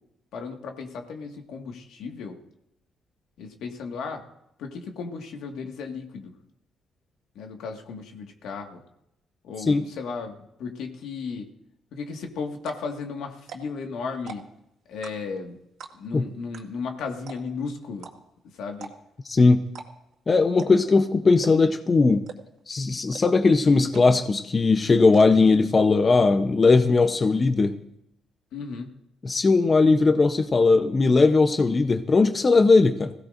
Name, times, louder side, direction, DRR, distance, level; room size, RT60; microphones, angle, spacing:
voice 1, 0.3-2.4 3.4-4.2 4.6-6.3 7.4-8.8 9.4-11.5 11.9-14.5 14.9-15.6 15.9-18.1 18.5-18.9 28.5-28.9, left 5 dB, 80° left, 3 dB, 1.7 m, -35 dB
sound 1, 12.1-12.2 12.6-12.9 13.4-13.8 14.1-14.6 15.0-15.4 15.8-16.1 16.5-16.6 16.9-17.0 17.3-17.6 18.0-18.1 18.7-19.2 19.7-20.1 20.6-20.9 21.4-21.8 22.3-22.6 23.1-23.2 23.6-23.7 23.9-24.4 24.6-25.2, right 6 dB, 70° right, 2.1 m, -41 dB
voice 2, 19.3-19.6 20.3-22.3 22.7-27.8 29.2-33.1, left 3 dB, 30° left, 8 dB, 0.7 m, -19 dB
21.0 x 16.0 x 2.6 m, 0.80 s
cardioid pair, 90°, 0 cm